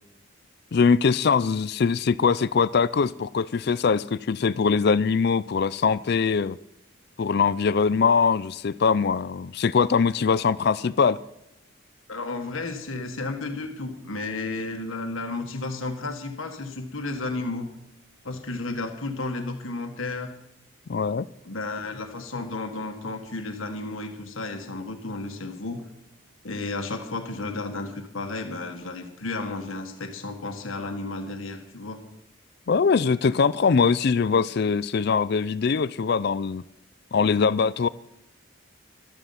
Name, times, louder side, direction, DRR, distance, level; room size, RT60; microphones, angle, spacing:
voice 1, 0.7-6.6 7.2-11.2 20.9-21.3 32.7-36.6 37.1-37.9, left 5 dB, 50° left, 0.4 m, -22 dB
voice 2, 12.1-17.7 18.2-20.3 21.4-25.8 26.4-32.0, left 2 dB, 80° left, 1.7 m, -33 dB
13.0 x 13.0 x 5.8 m
head